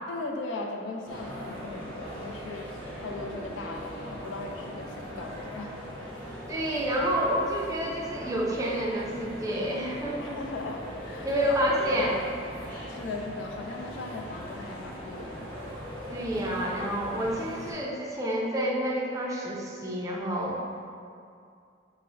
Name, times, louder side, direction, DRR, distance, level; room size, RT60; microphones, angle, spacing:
voice 1, 0.1-2.7 3.0-5.8 10.2-12.2 12.6-15.5, left 3 dB, 85° left, 1 dB, 0.4 m, -38 dB
sound 1, 1.1-17.7, equal, 10° left, 1.1 m, -40 dB
voice 2, 6.5-10.3 11.2-12.2 16.1-20.6, equal, 20° right, -3 dB, 0.4 m, -29 dB
5.5 x 2.0 x 2.5 m, 2.4 s
head